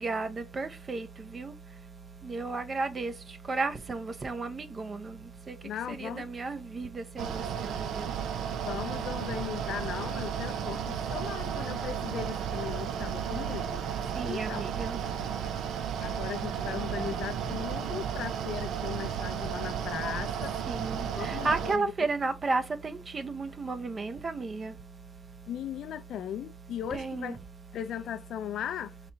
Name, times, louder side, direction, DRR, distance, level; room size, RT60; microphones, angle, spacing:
voice 1, 0.6-1.1 1.3-1.5 2.3-3.1 3.5-5.0 5.9-7.4 14.2-15.0 20.7-24.7 26.9-27.3, right 3 dB, 35° right, 0.6 m, -33 dB
voice 2, 5.6-6.3 7.5-7.6 8.6-13.8 14.2-14.6 16.0-20.6 21.0-21.9 25.5-27.4 27.7-29.0, left 10 dB, 75° left, 0.4 m, -38 dB
Mechanical fan, 7.2-21.8, right 8 dB, 75° right, 0.4 m, -33 dB
4.1 x 2.9 x 3.3 m
cardioid pair, 90°, 0 cm